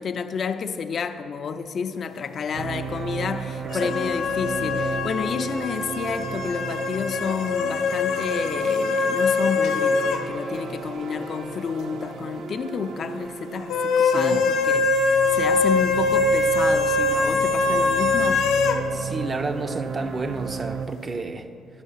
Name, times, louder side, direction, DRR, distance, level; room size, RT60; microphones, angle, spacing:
voice 1, 0.0-18.4, left 6 dB, 55° left, 0.5 m, -30 dB
sound 1, 2.5-20.9, right 5 dB, 75° right, 0.6 m, -35 dB
sound 2, 3.7-10.3 10.5-10.6 13.7-18.8, left 3 dB, 85° left, 0.7 m, -23 dB
voice 2, 14.0-14.4 18.9-21.5, right 3 dB, 35° right, 0.6 m, -30 dB
11.0 x 6.2 x 5.6 m
cardioid pair, 90°, 0 cm